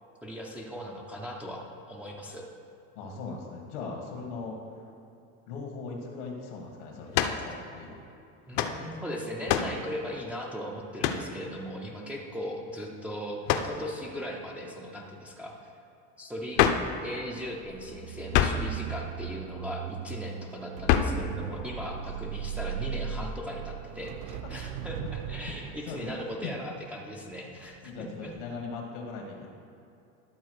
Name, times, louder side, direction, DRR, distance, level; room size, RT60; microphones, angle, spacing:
voice 1, 0.2-2.5 8.5-15.7 16.2-16.6 17.0-28.3, equal, 5° right, -2 dB, 0.3 m, -38 dB
voice 2, 3.0-4.9 5.5-8.0 11.3-12.1 21.5-21.9 24.4-24.5 25.0-25.1 25.8-26.5 27.8-29.5, left 4 dB, 85° left, -1 dB, 1.7 m, -40 dB
sound 1, 7.1-7.4 8.5-8.8 9.5-9.8 11.0-11.3 13.5-13.8 16.5-16.9 18.3-18.7 20.9-21.2, left 9 dB, 50° left, 0.6 m, -25 dB
sound 2, 17.6-27.9 28.3-28.6, right 8 dB, 60° right, 0.5 m, -38 dB
12.0 x 4.2 x 6.4 m, 2.7 s
cardioid pair, 175°, 34 cm